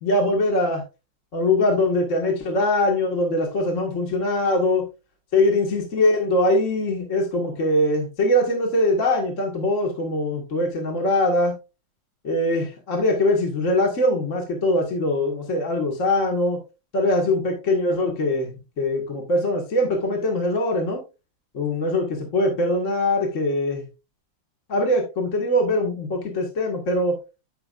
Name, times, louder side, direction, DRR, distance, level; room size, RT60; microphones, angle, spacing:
voice 1, 0.0-0.8 1.3-4.9 5.3-11.5 12.2-16.6 16.9-21.0 21.5-23.8 24.7-27.2, left 1 dB, 40° left, 2 dB, 2.1 m, -22 dB
14.0 x 5.8 x 2.5 m, 0.28 s
omnidirectional pair, 2.1 m